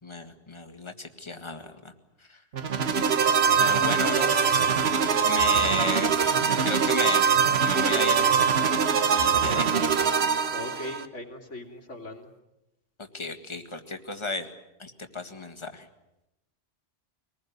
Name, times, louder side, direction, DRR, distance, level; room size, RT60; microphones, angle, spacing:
voice 1, 0.0-1.9 2.3-2.4 3.6-4.6 5.2-7.3 7.6-8.4 9.1-10.0 13.1-14.5 14.8-15.9, left 2 dB, 25° left, 6 dB, 1.9 m, -34 dB
sound 1, 2.5-11.0, right 6 dB, 60° right, 1.4 m, -23 dB
voice 2, 10.5-12.3, left 1 dB, 85° left, 3 dB, 3.2 m, -39 dB
24.5 x 20.0 x 9.4 m, 0.92 s
omnidirectional pair, 1.2 m